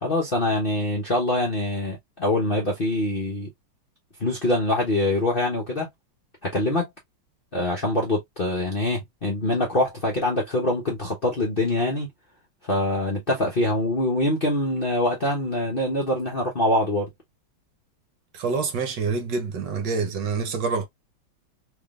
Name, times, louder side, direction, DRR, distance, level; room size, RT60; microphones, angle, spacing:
voice 1, 0.0-3.5 4.2-5.9 6.4-6.9 7.5-12.1 12.7-17.1, left 1 dB, 40° left, 0.8 m, -24 dB
voice 2, 18.3-20.9, right 4 dB, 65° right, 1.4 m, -26 dB
3.5 x 3.4 x 2.4 m
omnidirectional pair, 2.3 m